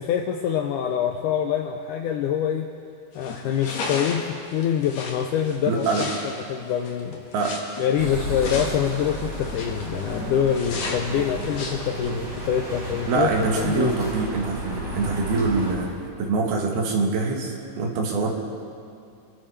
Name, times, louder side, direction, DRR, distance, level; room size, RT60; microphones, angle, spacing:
voice 1, 0.0-2.7 3.1-5.9 6.5-7.2 7.8-13.3 13.5-13.9, left 9 dB, 85° left, 4 dB, 1.8 m, -25 dB
sound 1, 3.1-12.5, left 3 dB, 55° left, 2.5 m, -35 dB
voice 2, 5.7-6.1 7.3-7.6 13.1-15.9 16.2-18.3, right 3 dB, 90° right, 0 dB, 3.5 m, -24 dB
sound 2, 8.0-15.7, right 2 dB, 50° right, 5.2 m, -33 dB
25.5 x 12.0 x 3.3 m, 2.5 s
omnidirectional pair, 4.4 m